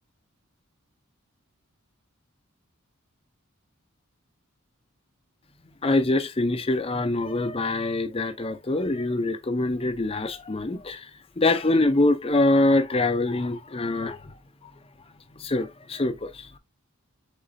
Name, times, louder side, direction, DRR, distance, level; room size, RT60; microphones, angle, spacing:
voice 1, 5.8-11.1 11.4-14.7 15.3-16.6, left 2 dB, 25° left, 0.6 m, -24 dB
5.1 x 3.8 x 2.6 m
head